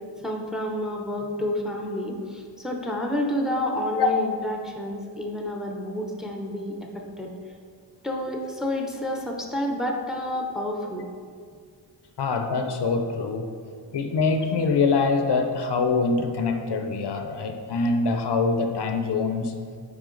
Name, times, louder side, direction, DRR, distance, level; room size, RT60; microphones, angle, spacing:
voice 1, 0.2-7.3 8.0-11.1, left 1 dB, ahead, 1 dB, 0.6 m, -29 dB
voice 2, 12.2-13.5 13.9-19.5, left 4 dB, 60° left, 5 dB, 0.6 m, -24 dB
9.8 x 3.6 x 3.8 m, 2.1 s
wide cardioid pair, 140°, 46 cm